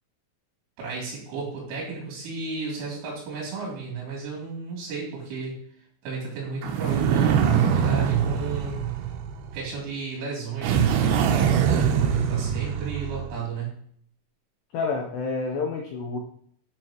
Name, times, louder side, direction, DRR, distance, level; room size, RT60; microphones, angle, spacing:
voice 1, 0.8-5.6 6.0-8.8 9.5-13.8, right 5 dB, 70° right, -3 dB, 5.4 m, -33 dB
sound 1, 6.6-9.7 10.6-13.3, right 8 dB, 90° right, 2.4 m, -23 dB
voice 2, 14.7-16.2, left 4 dB, 80° left, 1 dB, 2.5 m, -28 dB
11.5 x 5.6 x 3.0 m, 0.62 s
omnidirectional pair, 5.9 m